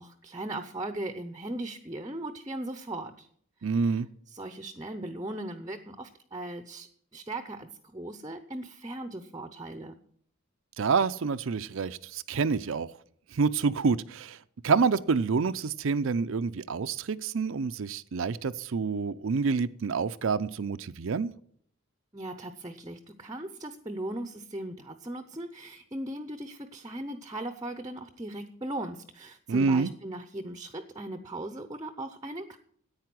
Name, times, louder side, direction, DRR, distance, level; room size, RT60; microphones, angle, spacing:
voice 1, 0.0-3.3 3.6-3.8 4.3-6.9 7.1-9.9 22.1-32.6, right 1 dB, 20° right, 0.7 m, -38 dB
voice 2, 3.6-4.1 10.8-12.9 13.3-14.4 14.6-21.3 29.5-29.9, right 5 dB, 65° right, 0.5 m, -27 dB
10.5 x 8.8 x 7.6 m
head